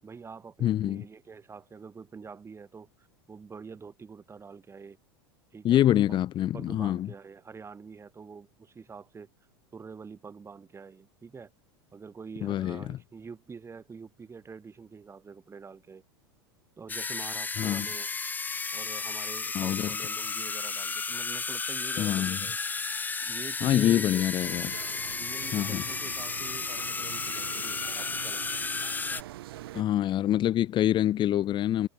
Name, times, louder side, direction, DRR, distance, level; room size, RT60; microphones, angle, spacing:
voice 1, 0.0-5.0 5.5-6.2 6.5-9.3 9.7-11.5 11.9-16.0 16.8-18.1 18.7-22.6 23.2-24.3 25.2-28.4, right 5 dB, 20° right, 7.4 m, -46 dB
voice 2, 0.6-1.0 5.6-7.1 12.4-13.0 17.6-17.9 19.5-19.9 22.0-22.4 23.6-24.7 25.5-25.8 29.7-31.9, left 12 dB, 40° left, 1.9 m, -25 dB
sound 1, 16.9-29.2, left 4 dB, 15° left, 0.7 m, -33 dB
sound 2, 24.4-29.8, right 15 dB, 70° right, 7.9 m, -44 dB
hypercardioid pair, 95°, 13 cm